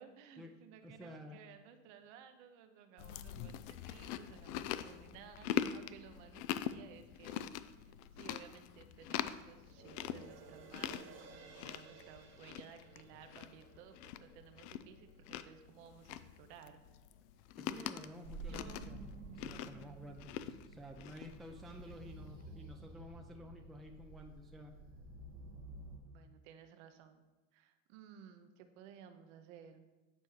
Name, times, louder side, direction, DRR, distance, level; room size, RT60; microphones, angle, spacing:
voice 1, 0.0-7.4 7.8-16.8 17.8-17.9 18.4-19.0 26.0-27.2 27.5-29.9, right 8 dB, 70° right, 7 dB, 0.8 m, -57 dB
voice 2, 0.8-1.4 17.6-24.8, left 1 dB, ahead, 2 dB, 0.5 m, -52 dB
Chewing mastication, 3.0-21.9, left 11 dB, 70° left, 0.5 m, -44 dB
sound 1, 9.7-16.3 16.7-16.8, right 5 dB, 45° right, 1.3 m, -59 dB
sound 2, 18.2-26.0, right 2 dB, 90° right, 1.3 m, -51 dB
9.5 x 4.4 x 3.1 m, 1.1 s
supercardioid pair, 105°, 37 cm